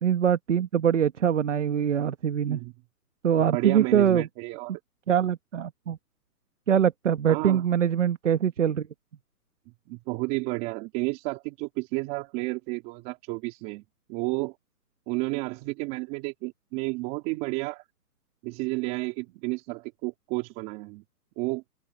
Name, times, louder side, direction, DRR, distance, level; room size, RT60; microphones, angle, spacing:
voice 1, 0.0-2.6 3.2-4.3 5.1-6.0 6.7-8.9, right 9 dB, 50° right, 1.6 m, -23 dB
voice 2, 3.5-4.8 7.3-7.6 9.9-13.8 14.1-14.6 15.1-17.8 18.4-21.0 21.4-21.6, right 24 dB, 15° right, 3.9 m, -31 dB
open air
hypercardioid pair, 175°, 47 cm